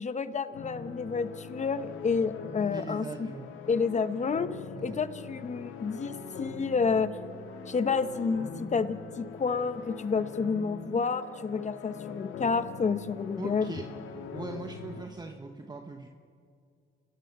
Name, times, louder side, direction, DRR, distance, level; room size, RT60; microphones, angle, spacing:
voice 1, 0.0-3.3 3.7-4.5 4.8-7.1 7.7-13.7, left 5 dB, 35° left, 12 dB, 1.0 m, -29 dB
sound 1, 0.5-15.0, left 5 dB, 85° left, 1.9 m, -42 dB
voice 2, 2.7-3.5 4.7-5.0 13.4-13.9 14.3-16.1, right 3 dB, 20° right, 4 dB, 1.2 m, -40 dB
28.0 x 16.5 x 6.1 m, 2.2 s
cardioid pair, 90°, 20 cm